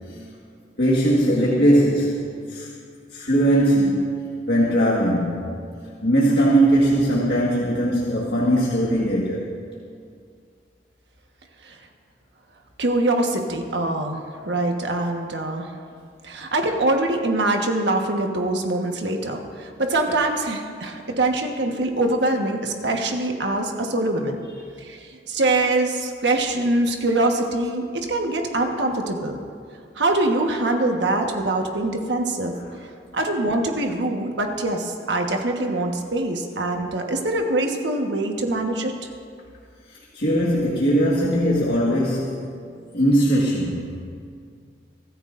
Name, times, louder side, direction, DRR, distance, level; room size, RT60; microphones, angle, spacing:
voice 1, 0.8-2.7 3.1-4.1 4.5-5.5 6.0-9.5 32.7-32.8 39.9-42.5 42.9-44.0, right 1 dB, 65° left, -5 dB, 1.7 m, -20 dB
voice 2, 12.8-15.7 16.2-24.4 24.8-25.0 25.3-29.4 30.0-32.5 33.1-38.9, right 2 dB, 80° right, 3 dB, 1.4 m, -23 dB
24.0 x 13.5 x 2.6 m, 2.2 s
head